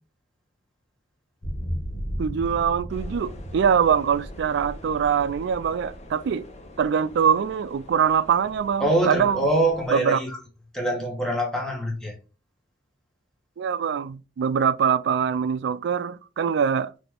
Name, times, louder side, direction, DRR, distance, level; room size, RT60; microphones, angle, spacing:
sound 1, 1.4-7.5, equal, 55° left, 1.4 m, -35 dB
voice 1, 2.2-6.5 6.8-9.5 9.9-10.2 13.6-16.9, right 7 dB, 70° right, 0.3 m, -23 dB
sound 2, 2.9-9.9, left 1 dB, 40° left, 0.8 m, -46 dB
voice 2, 8.8-10.4 10.7-12.1, right 1 dB, 5° left, 1.4 m, -24 dB
4.1 x 3.3 x 3.5 m
head